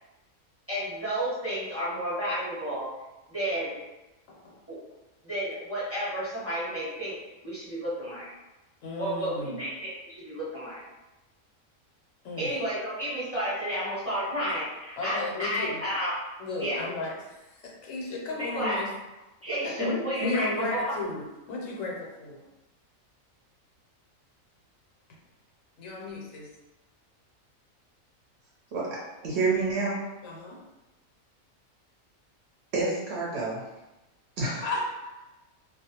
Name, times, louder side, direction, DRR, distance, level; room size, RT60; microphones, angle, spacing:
voice 1, 0.7-2.9 3.3-3.8 4.7-4.8 5.2-7.1 7.4-8.3 9.0-10.8 12.4-16.2 16.6-16.8 18.3-18.8 19.4-21.0, equal, 15° right, -10 dB, 0.7 m, -31 dB
voice 2, 8.8-9.6 12.2-12.5 15.0-15.8 16.4-18.9 19.6-22.4 25.8-26.5 30.2-30.6 34.6-35.2, left 2 dB, 75° left, -2 dB, 1.0 m, -34 dB
voice 3, 29.2-30.0 32.7-33.6 34.4-34.6, right 3 dB, 60° right, -6 dB, 0.8 m, -28 dB
2.3 x 2.0 x 2.8 m, 1.0 s
omnidirectional pair, 1.4 m